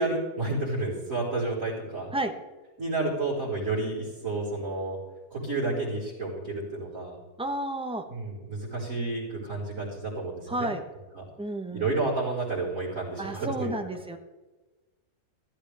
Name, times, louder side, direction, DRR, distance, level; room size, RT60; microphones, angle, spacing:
voice 1, 0.0-2.1 2.8-5.0 5.3-7.2 8.1-10.7 11.2-11.3 11.7-13.7, right 2 dB, 65° right, -11 dB, 5.4 m, -30 dB
voice 2, 7.4-8.1 10.5-10.8 11.4-11.9 13.2-14.2, right 1 dB, 5° right, 6 dB, 0.9 m, -31 dB
14.5 x 14.5 x 3.5 m, 1.2 s
omnidirectional pair, 1.6 m